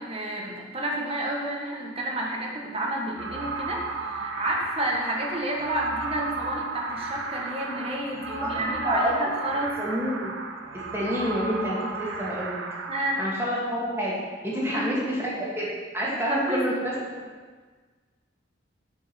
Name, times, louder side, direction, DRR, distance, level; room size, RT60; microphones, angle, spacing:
voice 1, 0.0-9.7 12.9-13.2 14.5-14.9 16.0-16.6, right 1 dB, 30° right, -1 dB, 1.4 m, -30 dB
sound 1, 3.2-13.0, right 3 dB, 75° right, 1.0 m, -34 dB
voice 2, 8.4-9.2 9.8-10.3 10.7-12.6 13.2-14.2 14.4-17.2, equal, 15° right, -6 dB, 2.0 m, -28 dB
8.7 x 5.3 x 5.9 m, 1.4 s
head